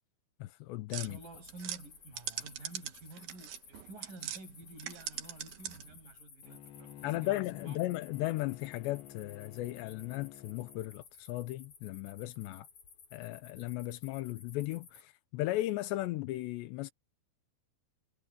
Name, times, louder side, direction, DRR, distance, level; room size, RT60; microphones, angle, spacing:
voice 1, 0.4-1.2 7.0-12.7 13.1-16.9, left 17 dB, 85° left, 2.9 m, -36 dB
sound 1, 0.9-4.4 4.7-6.0, right 11 dB, 65° right, 2.9 m, -42 dB
sound 2, 1.0-15.0, left 6 dB, 45° left, 4.8 m, -57 dB
voice 2, 1.0-7.8, right 2 dB, 45° right, 7.6 m, -51 dB
Bowed string instrument, 6.4-11.0, left 12 dB, 70° left, 3.0 m, -51 dB
omnidirectional pair, 5.2 m